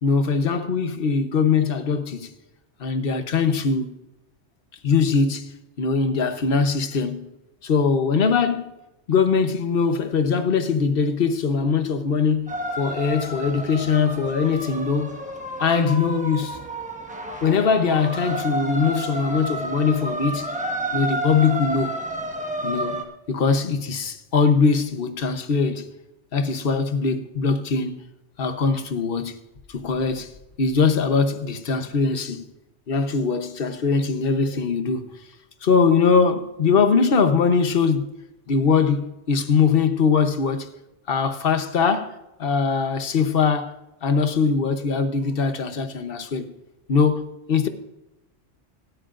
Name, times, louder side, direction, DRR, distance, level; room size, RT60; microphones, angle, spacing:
voice 1, 0.0-2.3 2.8-3.9 4.8-7.3 7.6-8.7 9.1-15.2 15.6-16.6 17.4-20.5 20.9-22.0 22.6-25.9 26.3-28.0 28.4-29.4 29.7-30.3 30.6-32.4 32.9-35.1 35.6-38.1 38.5-40.7 41.1-43.7 44.0-46.5 46.9-47.7, left 5 dB, 55° left, 1.1 m, -21 dB
sound 1, 12.5-23.0, right 1 dB, 5° right, 1.1 m, -30 dB
25.5 x 9.4 x 2.5 m
omnidirectional pair, 1.2 m